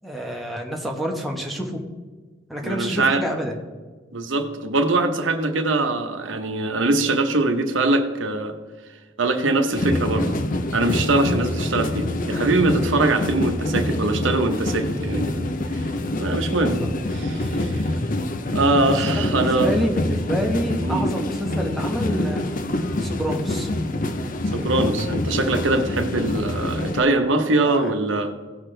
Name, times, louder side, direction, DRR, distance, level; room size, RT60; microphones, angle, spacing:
voice 1, 0.0-1.8 2.5-3.5 16.8-16.9 17.2-17.5 19.1-22.5 23.0-23.7 27.6-28.0, equal, ahead, 0 dB, 1.2 m, -28 dB
voice 2, 2.6-3.2 4.1-8.5 9.2-10.4 10.7-15.9 16.2-16.8 17.1-17.9 18.5-19.7 20.8-21.1 24.5-28.3, right 2 dB, 80° right, 5 dB, 1.0 m, -22 dB
sound 1, 9.7-27.0, left 1 dB, 45° left, 0.6 m, -26 dB
16.5 x 6.0 x 3.3 m, 1.4 s
head